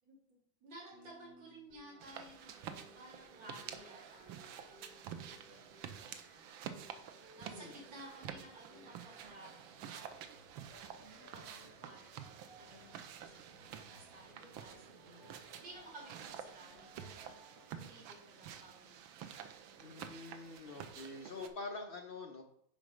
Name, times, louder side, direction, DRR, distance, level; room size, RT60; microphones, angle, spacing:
voice 1, 0.1-6.6 7.3-10.4 11.0-12.9 13.2-19.0 19.6-20.1, right 1 dB, 70° right, -4 dB, 3.3 m, -56 dB
sound 1, 1.7-17.7, left 1 dB, 5° right, 2.6 m, -63 dB
sound 2, 2.0-21.5, right 8 dB, 85° right, 1.5 m, -50 dB
sound 3, 10.1-16.4, right 1 dB, 25° right, 1.4 m, -68 dB
voice 2, 19.8-22.4, left 3 dB, 45° left, 2 dB, 0.7 m, -46 dB
7.5 x 5.2 x 5.0 m, 0.69 s
omnidirectional pair, 2.1 m